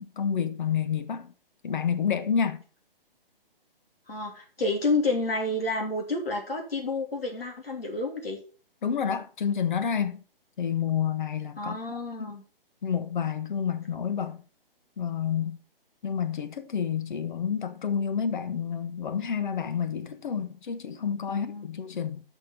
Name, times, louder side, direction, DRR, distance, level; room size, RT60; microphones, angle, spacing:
voice 1, 0.0-1.3 1.6-2.6 8.8-10.2 10.6-12.3 12.8-14.4 15.0-15.6 16.0-22.2, left 7 dB, 55° left, 1.3 m, -29 dB
voice 2, 4.1-8.4 11.6-12.4 21.3-21.7, left 2 dB, 85° left, 2.9 m, -29 dB
6.7 x 6.2 x 6.8 m
figure-of-eight pair, 140°, 29 cm